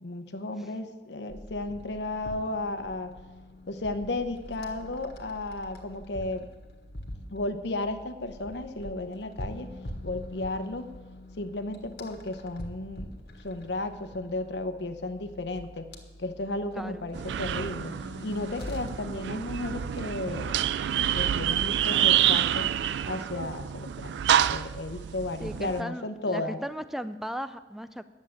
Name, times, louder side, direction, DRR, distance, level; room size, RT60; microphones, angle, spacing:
voice 1, 0.0-3.1 3.7-6.5 7.3-9.7 10.0-10.9 11.4-15.9 16.2-17.9 18.2-20.6 21.1-22.7 23.1-24.1 24.5-26.6, left 2 dB, 80° left, 7 dB, 0.9 m, -34 dB
sound 1, 1.3-20.6, left 1 dB, 60° left, 1.7 m, -44 dB
sound 2, 17.1-25.8, right 10 dB, 80° right, 0.3 m, -28 dB
voice 2, 25.4-28.0, equal, ahead, 12 dB, 0.4 m, -36 dB
11.0 x 7.4 x 8.7 m, 1.2 s
head